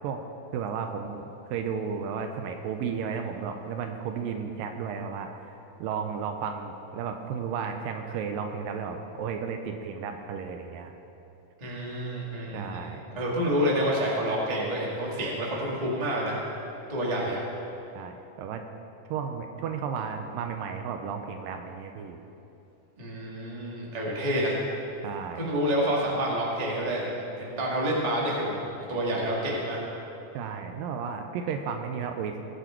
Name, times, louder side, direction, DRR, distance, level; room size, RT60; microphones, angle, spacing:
voice 1, 0.5-10.9 12.5-13.0 18.0-18.6 19.1-22.2 25.0-25.5 30.3-32.4, right 6 dB, 80° right, 5 dB, 2.3 m, -33 dB
voice 2, 11.6-16.4 16.9-17.4 23.0-24.6 25.3-29.8, equal, 15° right, -4 dB, 1.3 m, -28 dB
19.0 x 7.5 x 4.5 m, 2.8 s
omnidirectional pair, 4.1 m